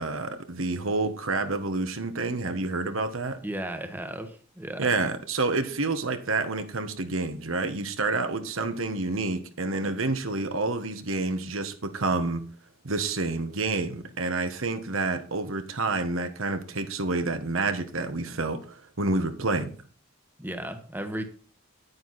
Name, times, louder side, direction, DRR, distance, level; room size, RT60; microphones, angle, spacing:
voice 1, 0.0-3.4 4.8-12.4 12.8-19.7, right 3 dB, 75° right, 1.4 m, -28 dB
voice 2, 3.4-4.9 20.4-21.2, right 1 dB, 10° right, 1.1 m, -35 dB
9.8 x 9.5 x 4.1 m
head